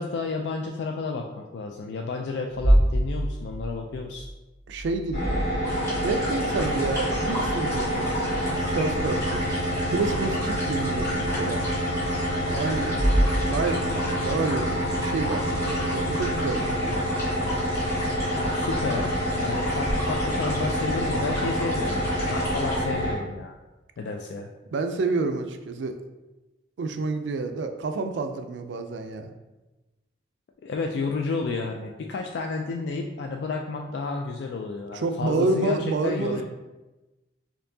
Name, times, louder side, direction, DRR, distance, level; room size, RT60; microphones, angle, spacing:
voice 1, 0.0-4.3 18.3-23.5 24.0-24.5 30.6-35.8 36.0-36.4, left 4 dB, 65° left, 2 dB, 0.3 m, -31 dB
sound 1, 2.5-6.0 10.5-10.6 11.5-11.6 12.8-14.1 19.8-19.9, right 1 dB, ahead, 0.5 m, -25 dB
voice 2, 4.7-5.4 6.0-8.2 8.5-9.4 9.9-11.6 12.5-13.0 13.4-17.0 24.7-26.0 26.8-29.3 34.9-36.4, right 3 dB, 75° right, 7 dB, 0.3 m, -29 dB
sound 2, 5.1-23.1, equal, 40° left, 1.4 m, -27 dB
sound 3, 5.6-22.8, equal, 15° left, 1.4 m, -35 dB
4.3 x 2.7 x 2.7 m, 1.1 s
head